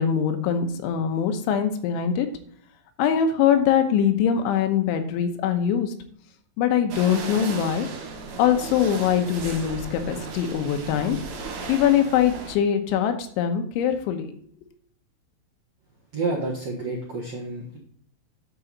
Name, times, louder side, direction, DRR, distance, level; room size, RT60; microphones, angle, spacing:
voice 1, 0.0-2.3 3.0-5.9 6.6-7.9 8.4-11.2 11.7-14.3, left 8 dB, 85° left, 6 dB, 3.4 m, -22 dB
sound 1, 6.9-12.6, right 4 dB, 85° right, 1.5 m, -36 dB
voice 2, 16.1-17.8, right 3 dB, 70° right, -3 dB, 1.5 m, -29 dB
12.0 x 5.0 x 4.0 m, 0.62 s
omnidirectional pair, 5.3 m